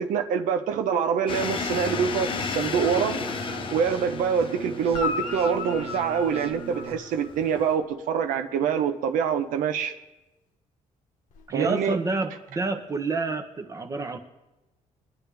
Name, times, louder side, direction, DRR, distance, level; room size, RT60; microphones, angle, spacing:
voice 1, 0.0-3.2 3.7-9.9 11.5-12.0, right 7 dB, 90° right, 6 dB, 0.9 m, -25 dB
sound 1, 1.3-7.7, left 5 dB, 40° left, 0.8 m, -34 dB
sound 2, 1.9-6.9, right 4 dB, 50° right, 1.3 m, -39 dB
Guitar, 4.9-7.5 11.3-11.4, left 4 dB, 80° left, 1.3 m, -34 dB
voice 2, 11.5-14.2, right 3 dB, 25° right, 6 dB, 0.9 m, -28 dB
22.5 x 9.9 x 3.4 m, 1.0 s
cardioid pair, 150°, 13 cm